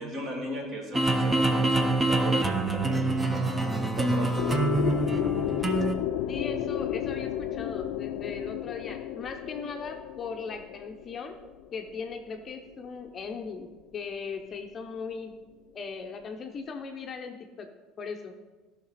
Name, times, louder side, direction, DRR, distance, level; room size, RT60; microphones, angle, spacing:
voice 1, 0.0-3.0 3.3-3.4 4.0-4.4, equal, 40° right, 1 dB, 2.0 m, -36 dB
sound 1, 0.9-5.9, right 2 dB, 10° right, 0.7 m, -25 dB
sound 2, 4.4-12.2, left 11 dB, 80° left, 0.3 m, -32 dB
voice 2, 6.3-11.4 11.7-15.4 15.7-17.7 18.0-18.3, left 5 dB, 30° left, 4 dB, 0.7 m, -38 dB
13.5 x 5.8 x 4.1 m, 1.2 s
cardioid pair, 155°, 0 cm